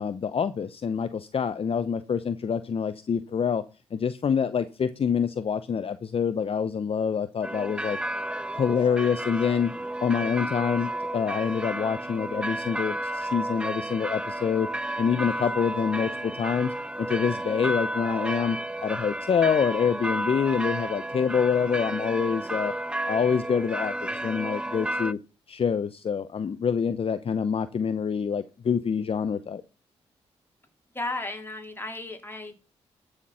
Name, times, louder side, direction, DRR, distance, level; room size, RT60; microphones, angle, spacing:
voice 1, 0.0-3.6 3.9-8.0 8.5-9.7 10.0-14.7 15.0-22.7 23.1-25.2 25.5-29.6, left 6 dB, 50° left, 0.8 m, -26 dB
sound 1, 7.4-25.1, right 1 dB, 10° right, 0.6 m, -32 dB
voice 2, 30.9-32.5, left 2 dB, 20° left, 3.5 m, -34 dB
12.5 x 6.6 x 5.7 m
supercardioid pair, 55°, 12 cm